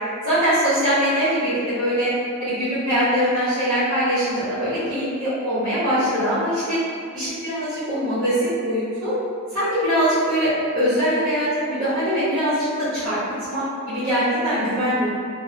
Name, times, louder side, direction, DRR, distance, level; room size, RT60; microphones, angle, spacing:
voice 1, 0.2-2.1 2.4-6.8 7.1-9.1 9.5-13.2 13.5-15.1, equal, 65° right, -16 dB, 0.9 m, -22 dB
2.7 x 2.0 x 2.4 m, 2.3 s
head